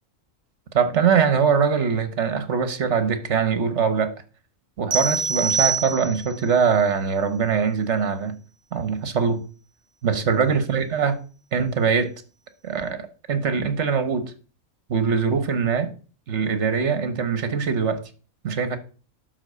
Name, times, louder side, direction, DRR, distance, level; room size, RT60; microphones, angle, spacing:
voice 1, 0.7-4.1 4.8-8.3 8.7-9.4 10.0-11.2 11.5-12.1 12.6-14.3 14.9-15.9 16.3-18.0 18.4-18.8, right 6 dB, 60° right, 1.5 m, -22 dB
sound 1, 4.9-6.5, right 5 dB, 30° right, 0.7 m, -24 dB
11.5 x 4.1 x 6.8 m
omnidirectional pair, 1.4 m